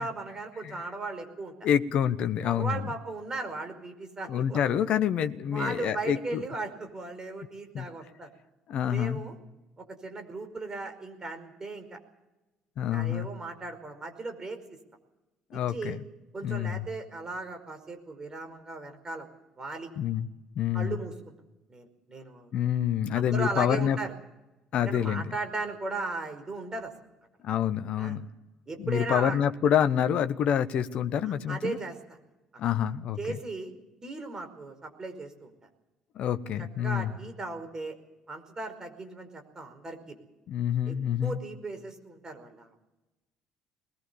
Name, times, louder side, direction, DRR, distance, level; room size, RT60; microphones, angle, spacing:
voice 1, 0.0-1.5 2.4-4.6 5.5-8.3 8.9-9.4 9.8-12.0 12.9-14.8 15.5-16.0 16.3-19.3 19.6-19.9 20.7-21.1 21.7-22.7 23.1-24.1 24.7-26.9 28.0-28.2 28.7-29.4 31.5-32.2 33.2-33.7 34.0-35.5 36.8-37.9 38.3-40.2 40.9-41.0 41.2-42.8, right 3 dB, 30° right, 7 dB, 5.1 m, -37 dB
voice 2, 1.6-2.8 4.3-6.4 7.7-7.9 8.7-9.2 12.8-13.3 15.5-16.0 16.4-16.9 20.0-20.3 20.6-21.0 22.5-24.0 24.7-25.3 27.4-28.3 28.8-31.8 32.6-33.4 36.1-37.1 40.5-41.4, left 9 dB, 55° left, 11 dB, 1.0 m, -27 dB
21.0 x 20.0 x 7.0 m, 1.0 s
figure-of-eight pair, 55°, 2 cm